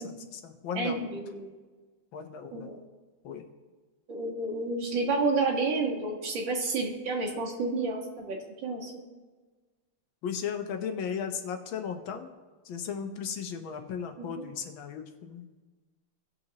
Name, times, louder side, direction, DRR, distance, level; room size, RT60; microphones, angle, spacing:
voice 1, 0.0-1.0 2.1-2.7 3.2-3.4 10.2-12.3 12.6-15.4, left 7 dB, 80° left, 6 dB, 1.6 m, -36 dB
voice 2, 0.7-1.5 2.5-2.8 4.1-8.9 14.2-14.5, right 3 dB, 70° right, -2 dB, 2.2 m, -30 dB
18.0 x 6.8 x 2.9 m, 1.3 s
omnidirectional pair, 2.2 m